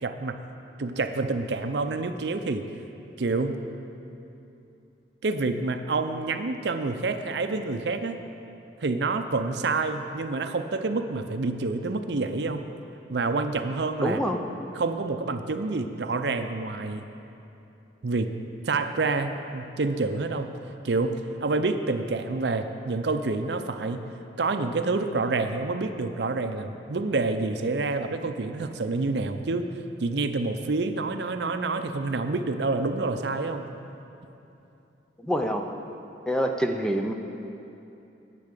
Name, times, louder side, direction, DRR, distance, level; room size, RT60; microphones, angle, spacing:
voice 1, 0.0-0.4 0.8-2.6 3.2-3.5 5.2-8.2 8.8-12.6 13.1-14.2 14.7-17.0 18.0-18.3 18.6-20.5 20.8-24.1 24.4-29.6 30.0-33.6, right 3 dB, 65° right, 8 dB, 0.6 m, -28 dB
voice 2, 14.0-14.4 35.2-35.7 36.3-37.1, equal, 5° left, 4 dB, 0.5 m, -26 dB
10.5 x 8.5 x 6.7 m, 2.8 s
head